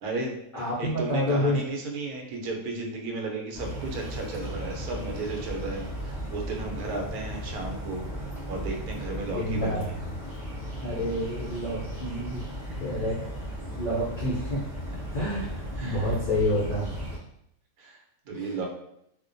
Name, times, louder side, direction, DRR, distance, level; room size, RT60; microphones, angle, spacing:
voice 1, 0.0-8.1 8.5-9.9 12.7-12.8 15.8-16.2 17.8-18.7, right 3 dB, 80° right, 1 dB, 1.1 m, -34 dB
voice 2, 0.5-1.6 9.3-9.9 10.8-12.4 12.8-13.4 13.8-14.6 15.1-15.5 15.8-17.1 18.3-18.5, left 1 dB, 65° left, -7 dB, 0.4 m, -28 dB
sound 1, 3.5-17.2, equal, 5° right, 0.3 m, -36 dB
2.4 x 2.1 x 2.5 m, 0.75 s
omnidirectional pair, 1.6 m